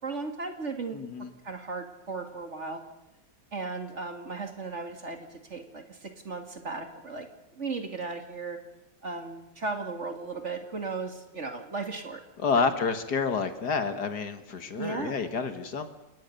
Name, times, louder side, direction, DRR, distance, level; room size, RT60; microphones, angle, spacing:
voice 1, 0.0-1.0 1.4-2.8 3.5-7.3 7.5-8.6 9.0-12.2 12.5-12.7 14.8-15.1, right 4 dB, 40° right, 5 dB, 2.5 m, -36 dB
voice 2, 0.9-1.3 12.4-15.9, left 5 dB, 70° left, 9 dB, 2.2 m, -29 dB
29.5 x 18.0 x 6.8 m, 0.93 s
omnidirectional pair, 1.9 m